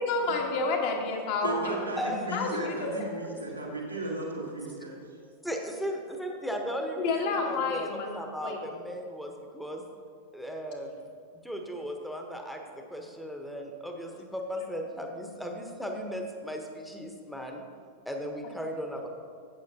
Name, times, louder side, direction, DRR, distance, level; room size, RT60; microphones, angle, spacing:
voice 1, 0.0-1.8 2.3-2.9 7.0-8.1 8.4-8.6, left 3 dB, 50° left, 1 dB, 1.4 m, -29 dB
voice 2, 1.4-5.0, right 2 dB, 85° right, -2 dB, 1.6 m, -35 dB
voice 3, 2.0-2.3 2.6-2.7 3.4-3.5 5.4-9.8 10.3-11.0 11.4-17.6 18.1-19.1, equal, ahead, 3 dB, 1.0 m, -36 dB
12.0 x 8.2 x 2.8 m, 2.2 s
figure-of-eight pair, 90°, 0 cm